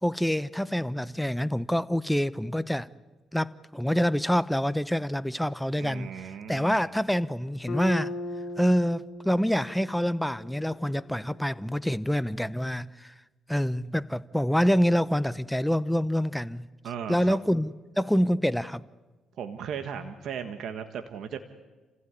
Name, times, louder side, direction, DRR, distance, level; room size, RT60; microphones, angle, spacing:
voice 1, 0.0-2.9 3.3-8.1 8.6-13.1 13.5-16.7 17.1-18.8, equal, 5° left, 0.8 m, -26 dB
voice 2, 5.8-6.7 16.8-17.4 19.4-21.4, right 7 dB, 70° right, 1.6 m, -36 dB
Bass guitar, 7.7-11.8, left 2 dB, 55° left, 3.1 m, -39 dB
29.0 x 16.0 x 9.8 m
cardioid pair, 90°, 0 cm